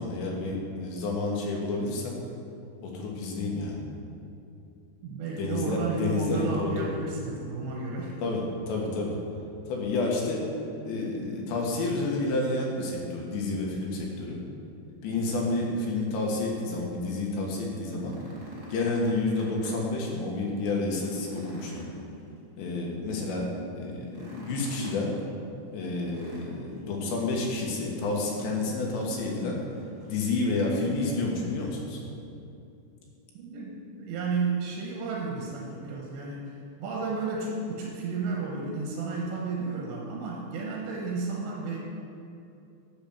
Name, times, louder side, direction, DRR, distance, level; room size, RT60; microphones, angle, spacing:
voice 1, 0.0-2.2 2.8-3.8 5.4-6.9 8.2-9.2 9.7-10.4 10.9-14.4 15.0-18.2 18.7-21.9 22.6-23.5 23.8-25.1 25.7-29.6 30.1-32.0, left 2 dB, 80° left, -1 dB, 3.7 m, -30 dB
voice 2, 5.0-8.2 33.3-41.8, right 4 dB, 85° right, -2 dB, 3.2 m, -32 dB
sound 1, 17.9-20.0 20.4-20.5 20.9-22.8 24.0-25.1 26.0-26.9 28.1-28.7 29.0-29.1 29.7-30.3 31.4-31.5, equal, 30° right, 1.5 m, -47 dB
7.9 x 7.7 x 7.1 m, 2.7 s
omnidirectional pair, 5.0 m